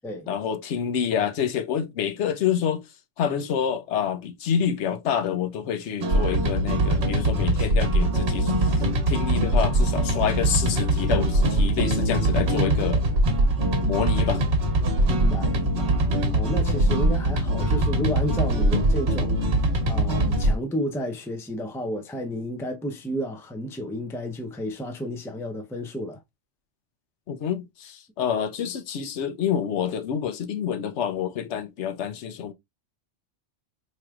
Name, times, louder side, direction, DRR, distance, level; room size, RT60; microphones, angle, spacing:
voice 1, 0.3-2.8 3.2-8.8 9.1-13.0 13.8-14.4 27.3-32.5, left 8 dB, 70° left, 0.9 m, -27 dB
sound 1, 6.0-20.6, right 1 dB, 60° right, 1.3 m, -22 dB
voice 2, 15.1-16.0 16.3-26.2, equal, 5° left, 0.4 m, -32 dB
4.5 x 3.1 x 2.3 m
omnidirectional pair, 1.3 m